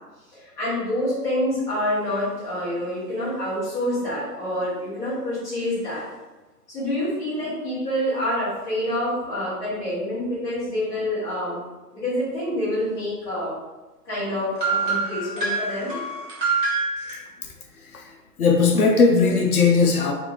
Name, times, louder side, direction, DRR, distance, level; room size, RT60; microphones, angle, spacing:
voice 1, 0.3-6.0 6.7-11.6 11.9-13.5 14.1-16.0, left 1 dB, 5° left, -12 dB, 0.7 m, -27 dB
sound 1, 14.6-17.2, right 4 dB, 35° right, 1.2 m, -25 dB
voice 2, 17.4-20.1, left 4 dB, 65° left, 2 dB, 0.5 m, -19 dB
2.5 x 2.5 x 3.1 m, 1.2 s
figure-of-eight pair, 135°, 47 cm